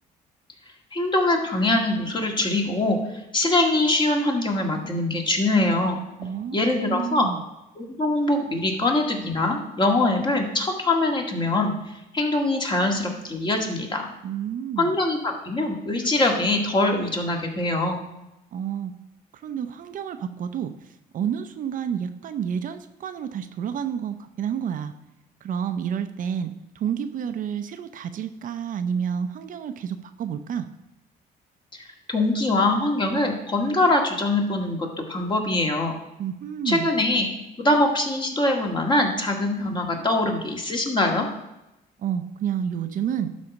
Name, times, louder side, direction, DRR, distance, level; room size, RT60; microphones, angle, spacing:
voice 1, 0.9-6.0 6.5-7.3 7.8-11.7 12.1-14.1 14.8-18.0 31.8-35.9 36.7-37.3 37.6-41.3, left 2 dB, 25° left, 2 dB, 1.8 m, -23 dB
voice 2, 6.2-6.6 6.9-7.4 14.2-14.9 18.5-18.9 19.4-20.7 21.1-24.9 25.4-30.7 36.2-36.9 42.0-43.3, right 8 dB, 55° right, 9 dB, 0.6 m, -29 dB
11.5 x 4.2 x 5.9 m, 0.91 s
cardioid pair, 110°, 17 cm